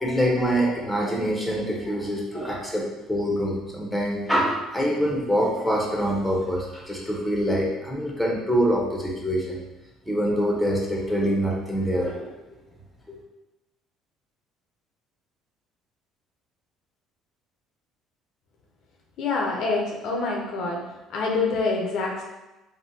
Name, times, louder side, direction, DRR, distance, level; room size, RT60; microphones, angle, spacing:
voice 1, 0.0-9.6 10.1-12.3 13.1-13.2, equal, ahead, -3 dB, 0.8 m, -25 dB
voice 2, 19.2-20.8 21.1-22.2, left 3 dB, 70° left, 0 dB, 0.6 m, -26 dB
3.4 x 2.1 x 2.7 m, 1.0 s
supercardioid pair, 85°, 0 cm